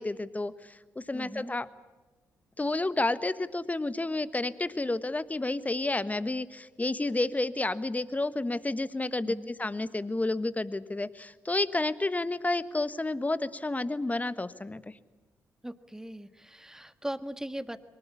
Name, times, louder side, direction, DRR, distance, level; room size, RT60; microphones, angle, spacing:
voice 1, 0.0-1.7 2.6-14.8, left 2 dB, 20° left, 15 dB, 1.4 m, -30 dB
voice 2, 1.1-1.5 9.2-9.5 15.6-17.8, right 1 dB, 5° right, 12 dB, 1.6 m, -39 dB
23.5 x 20.0 x 8.6 m, 1.2 s
hypercardioid pair, 40°, 8 cm